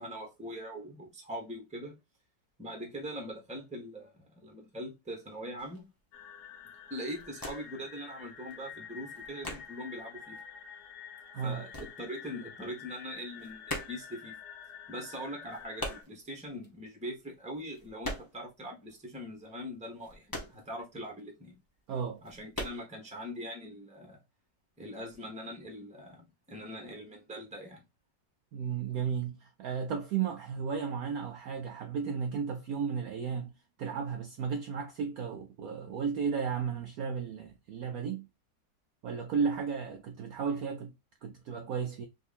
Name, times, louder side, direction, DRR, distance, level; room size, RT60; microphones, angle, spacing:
voice 1, 0.0-1.9 2.6-5.9 6.9-10.4 11.4-14.4 14.9-21.5 22.2-24.2 24.8-27.8, equal, 5° right, 0.9 m, -42 dB
sound 1, 5.6-5.8 6.3-6.6 6.9-7.9 8.1-10.0 10.3-12.6 12.9-18.6 18.9-19.0 19.4-21.3 21.7-21.8 22.2-22.8, left 1 dB, 20° left, 0.6 m, -42 dB
sound 2, 6.1-16.0, left 7 dB, 65° left, 1.2 m, -48 dB
voice 2, 11.3-11.6 21.9-22.2 28.5-33.5 33.8-38.3 39.0-40.9 41.2-42.1, right 6 dB, 70° right, 0.9 m, -34 dB
3.7 x 2.7 x 2.4 m
omnidirectional pair, 1.9 m